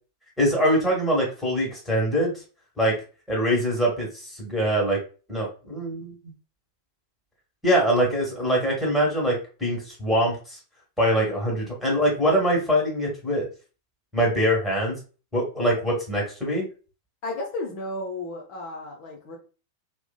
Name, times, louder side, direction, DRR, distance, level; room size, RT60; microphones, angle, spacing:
voice 1, 0.4-2.3 2.8-2.9 3.3-5.0 5.3-6.1 7.6-10.6 11.0-13.5 14.1-15.0 15.3-16.7, equal, 5° left, -3 dB, 1.2 m, -23 dB
voice 2, 17.2-19.4, left 2 dB, 45° left, -2 dB, 0.6 m, -33 dB
2.7 x 2.1 x 2.2 m, 0.35 s
figure-of-eight pair, 90°, 0 cm